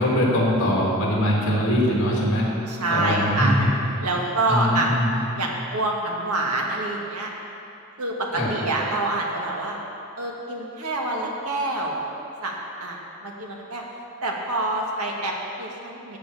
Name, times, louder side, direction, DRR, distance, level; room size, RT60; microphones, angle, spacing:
voice 1, 0.0-2.5 2.9-3.7 4.5-5.2 8.4-8.5, equal, 60° left, -4 dB, 2.9 m, -22 dB
voice 2, 2.7-3.6 4.0-4.9 5.3-7.3 8.0-9.8 10.2-12.0 12.4-12.5 12.8-13.8 14.2-16.2, right 2 dB, 85° right, -1 dB, 1.8 m, -26 dB
14.0 x 8.9 x 4.9 m, 2.7 s
head